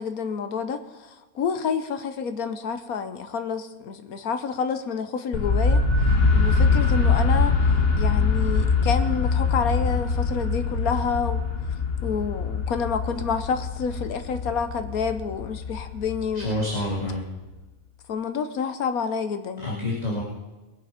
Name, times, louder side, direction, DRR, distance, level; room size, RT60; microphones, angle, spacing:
voice 1, 0.0-5.8 6.3-7.6 8.0-11.4 12.0-16.5 18.1-19.9, left 6 dB, 75° left, 9 dB, 1.4 m, -28 dB
sound 1, 5.3-17.2, left 4 dB, 45° left, 1.2 m, -23 dB
voice 2, 16.3-17.2 19.6-20.2, left 1 dB, 25° left, -5 dB, 2.4 m, -27 dB
21.5 x 7.7 x 5.2 m, 1.2 s
omnidirectional pair, 1.5 m